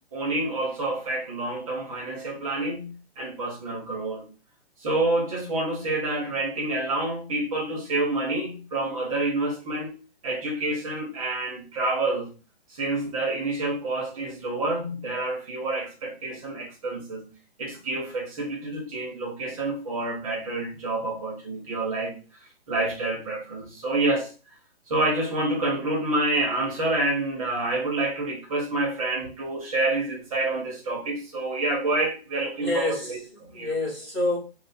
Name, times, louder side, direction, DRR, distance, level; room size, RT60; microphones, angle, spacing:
voice 1, 0.1-4.3 4.8-10.0 10.2-12.3 12.7-17.3 17.6-22.1 22.7-24.3 24.9-33.7, right 2 dB, 35° right, 1.1 m, -28 dB
voice 2, 32.6-34.4, left 2 dB, 10° left, 1.6 m, -28 dB
3.5 x 2.4 x 4.2 m
hypercardioid pair, 170°, 32 cm